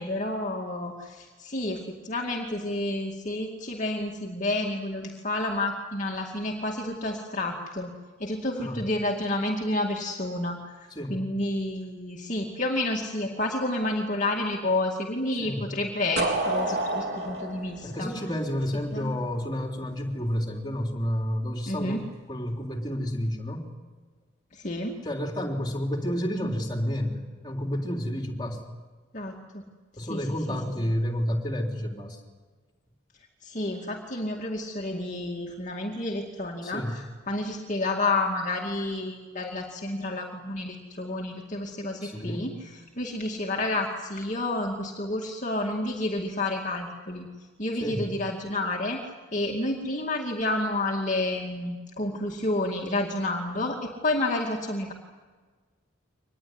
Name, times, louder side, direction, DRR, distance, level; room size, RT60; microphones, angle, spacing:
voice 1, 0.0-18.1 18.9-19.2 21.7-22.0 24.5-25.0 29.1-29.6 30.1-30.6 30.8-30.9 33.4-42.5 43.0-49.0 49.3-54.9, left 2 dB, 35° left, -1 dB, 2.4 m, -30 dB
sound 1, 16.2-19.0, right 2 dB, 55° right, 4.1 m, -29 dB
voice 2, 17.8-23.7 25.0-28.6 30.0-32.2 36.6-37.0 42.0-42.5 47.8-48.0, equal, 20° left, 2 dB, 3.7 m, -30 dB
25.0 x 20.5 x 9.7 m, 1.4 s
head